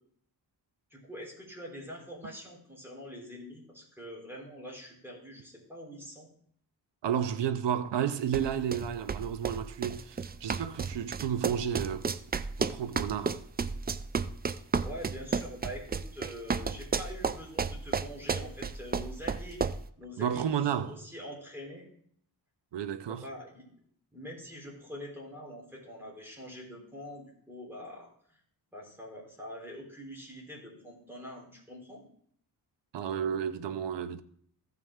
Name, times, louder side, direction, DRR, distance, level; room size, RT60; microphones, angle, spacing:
voice 1, 0.9-6.3 14.8-20.4 20.7-21.9 23.1-23.7 24.1-28.1 28.7-32.0, equal, 5° right, 3.6 m, -44 dB
voice 2, 7.0-12.1 12.6-13.4 20.2-20.9 22.7-23.2 32.9-34.2, right 8 dB, 90° right, 0.7 m, -32 dB
sound 1, 8.3-19.9, right 5 dB, 25° right, 0.3 m, -32 dB
14.5 x 5.9 x 3.6 m
wide cardioid pair, 100°, 41 cm